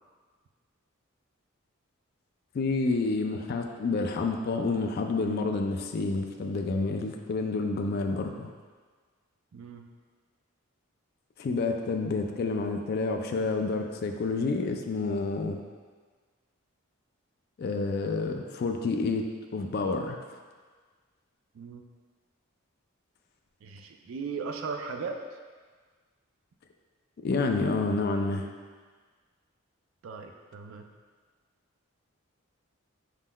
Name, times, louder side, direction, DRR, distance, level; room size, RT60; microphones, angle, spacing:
voice 1, 2.5-8.5 11.4-15.6 17.6-20.4 27.2-28.5, left 3 dB, 45° left, 3 dB, 0.3 m, -29 dB
voice 2, 9.5-9.9 21.5-21.9 23.6-25.4 30.0-30.9, right 5 dB, 65° right, 5 dB, 0.3 m, -37 dB
6.1 x 3.7 x 2.2 m, 1.5 s
head